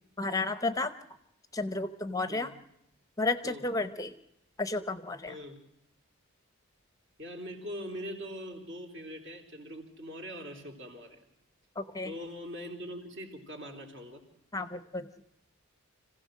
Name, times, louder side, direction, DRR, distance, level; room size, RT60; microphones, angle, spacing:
voice 1, 0.2-0.9 1.5-2.5 3.2-4.1 4.6-5.4 11.8-12.1 14.5-15.1, left 3 dB, 15° left, 11 dB, 0.7 m, -32 dB
voice 2, 5.3-5.6 7.2-11.2 12.0-14.3, equal, 55° right, 3 dB, 3.7 m, -42 dB
26.0 x 16.0 x 6.4 m, 0.84 s
head